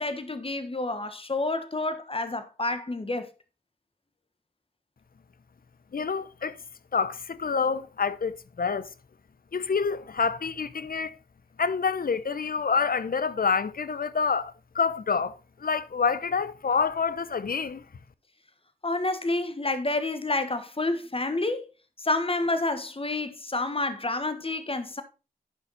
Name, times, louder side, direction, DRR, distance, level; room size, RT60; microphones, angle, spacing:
voice 1, 0.0-3.3 18.8-21.7 22.0-25.0, left 2 dB, 35° left, 1.4 m, -29 dB
voice 2, 5.9-6.6 6.9-8.9 9.5-11.1 11.6-17.8, left 5 dB, 65° left, 0.8 m, -27 dB
11.0 x 5.6 x 4.1 m
cardioid pair, 40°, 16 cm